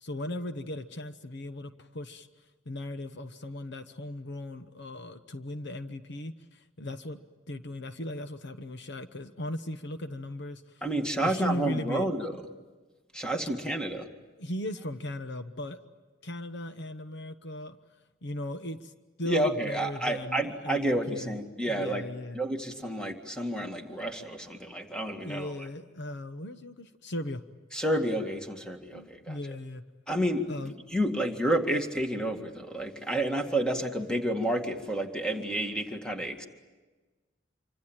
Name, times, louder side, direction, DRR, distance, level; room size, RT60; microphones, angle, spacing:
voice 1, 0.0-2.3 2.7-7.2 7.5-10.8 11.2-12.1 14.4-15.9 16.2-17.8 18.2-18.9 19.2-22.4 25.2-27.4 28.9-29.8 30.5-30.7, left 1 dB, 65° left, 9 dB, 1.0 m, -37 dB
voice 2, 10.8-12.4 13.1-14.1 19.2-22.1 22.3-25.7 27.7-29.4 30.1-36.5, right 1 dB, 5° left, 4 dB, 2.0 m, -30 dB
26.5 x 25.0 x 8.9 m, 1.3 s
head